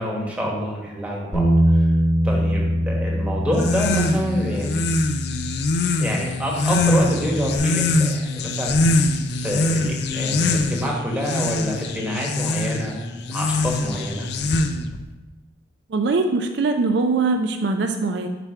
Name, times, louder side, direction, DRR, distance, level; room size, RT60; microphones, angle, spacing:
voice 1, 0.0-1.4 2.2-4.8 5.9-8.8 9.4-13.0 13.2-14.3, equal, 5° right, -3 dB, 1.1 m, -26 dB
Bass guitar, 1.3-7.6, equal, 15° left, 1.2 m, -23 dB
sound 1, 3.5-15.0, left 2 dB, 55° left, 0.4 m, -23 dB
voice 2, 15.9-18.3, right 3 dB, 60° right, 6 dB, 0.4 m, -22 dB
5.0 x 4.8 x 4.4 m, 1.1 s
head